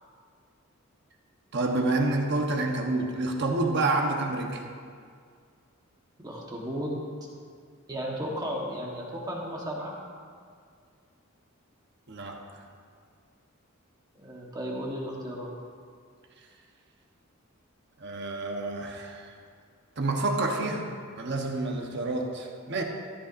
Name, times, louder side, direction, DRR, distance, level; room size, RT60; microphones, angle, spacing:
voice 1, 1.5-4.6 12.1-12.6 18.0-19.4 20.0-22.8, right 2 dB, 55° right, 2 dB, 1.0 m, -28 dB
voice 2, 6.2-6.9 7.9-9.9 14.2-15.5, equal, 20° right, -3 dB, 1.2 m, -34 dB
14.0 x 9.6 x 2.6 m, 2.1 s
head